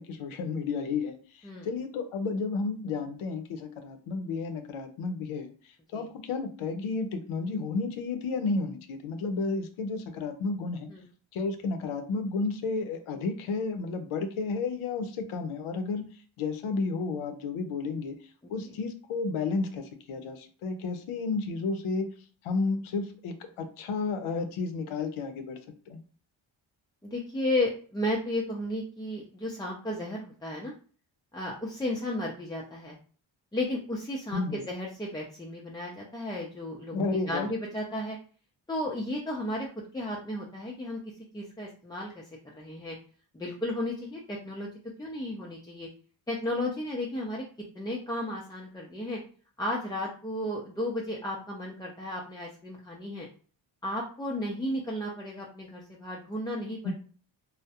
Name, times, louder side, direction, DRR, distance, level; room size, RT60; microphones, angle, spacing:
voice 1, 0.0-5.5 5.9-10.9 11.3-16.0 16.4-18.2 18.5-22.1 22.4-25.6 25.9-26.0 34.3-34.6 36.9-37.5 56.8-56.9, left 4 dB, 85° left, 7 dB, 0.5 m, -32 dB
voice 2, 27.0-30.7 31.3-33.0 33.5-38.2 38.7-39.7 39.9-41.0 41.3-42.2 42.5-43.0 43.3-44.7 45.0-45.9 46.3-47.4 47.8-49.2 49.6-53.3 53.8-56.9, left 1 dB, 10° left, -4 dB, 0.3 m, -33 dB
2.2 x 2.1 x 2.7 m, 0.41 s
cardioid pair, 65°, 48 cm